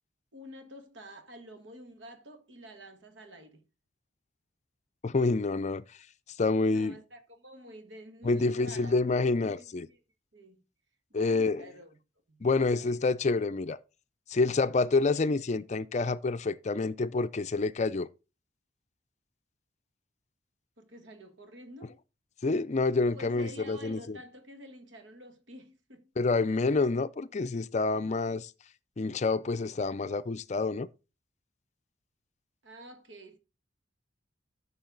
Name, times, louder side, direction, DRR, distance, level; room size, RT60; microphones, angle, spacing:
voice 1, 0.3-3.6 6.7-9.0 9.4-10.0 10.3-10.6 11.1-12.0 12.3-12.4 12.7-13.0 20.8-22.0 23.1-26.1 32.6-33.4, equal, 75° right, 1.6 m, -49 dB
voice 2, 5.0-5.9 6.4-7.0 8.2-9.9 11.1-11.6 12.4-13.8 14.3-18.1 22.4-24.2 26.2-28.5 29.0-30.9, left 3 dB, 35° left, 0.4 m, -28 dB
13.0 x 5.6 x 4.0 m
head